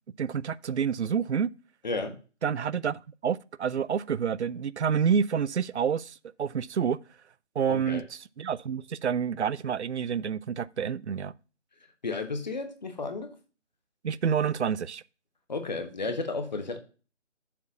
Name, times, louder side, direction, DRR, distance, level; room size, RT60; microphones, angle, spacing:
voice 1, 0.2-1.5 2.4-7.0 7.6-11.3 14.0-15.0, right 7 dB, 65° right, 0.5 m, -28 dB
voice 2, 1.8-2.2 7.7-8.0 12.0-13.3 15.5-16.8, left 3 dB, 35° left, 1.3 m, -33 dB
7.2 x 4.6 x 5.5 m
figure-of-eight pair, 160°, 36 cm